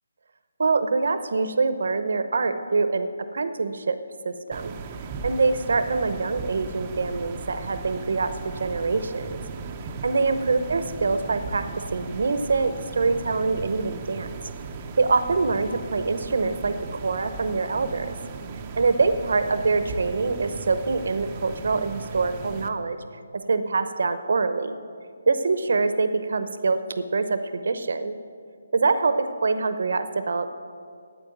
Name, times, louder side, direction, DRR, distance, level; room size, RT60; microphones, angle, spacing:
voice 1, 0.6-3.1 3.3-4.0 4.2-4.7 5.2-9.4 10.0-14.3 15.0-18.1 18.8-23.0 23.5-24.8 25.3-27.4 27.6-28.1 28.7-30.5, right 4 dB, 65° right, 10 dB, 0.8 m, -24 dB
sound 1, 4.5-22.7, right 4 dB, 20° right, 0.6 m, -37 dB
8.6 x 8.6 x 9.3 m, 2.3 s
hypercardioid pair, 170°, 0 cm